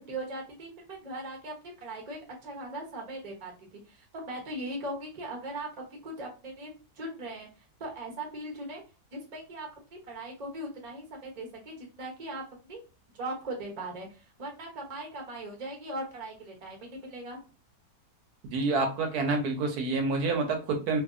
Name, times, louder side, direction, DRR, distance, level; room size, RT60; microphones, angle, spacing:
voice 1, 0.0-1.5 1.8-6.7 7.0-7.5 7.8-8.8 9.1-12.8 13.1-17.4, right 1 dB, 35° right, 0 dB, 0.7 m, -39 dB
voice 2, 18.5-21.0, right 3 dB, 75° right, 4 dB, 1.1 m, -28 dB
2.7 x 2.6 x 2.4 m, 0.33 s
omnidirectional pair, 1.8 m